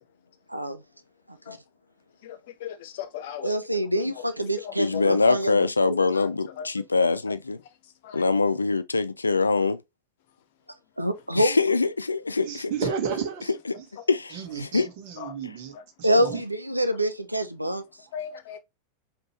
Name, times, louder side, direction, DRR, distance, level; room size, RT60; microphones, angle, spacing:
voice 1, 2.2-3.9 4.6-5.1 6.6-6.7 8.0-8.2 15.2-15.3 18.1-18.6, left 9 dB, 55° left, 0.9 m, -37 dB
voice 2, 3.4-5.7 11.0-11.6 16.0-17.8, equal, 85° right, 0.7 m, -25 dB
voice 3, 4.8-7.6 8.1-9.8 11.3-12.7 14.1-14.9, left 4 dB, 80° left, 0.5 m, -24 dB
voice 4, 12.4-13.9 14.3-16.4, right 7 dB, 50° right, 1.4 m, -33 dB
5.3 x 2.9 x 3.0 m
figure-of-eight pair, 90°, 0 cm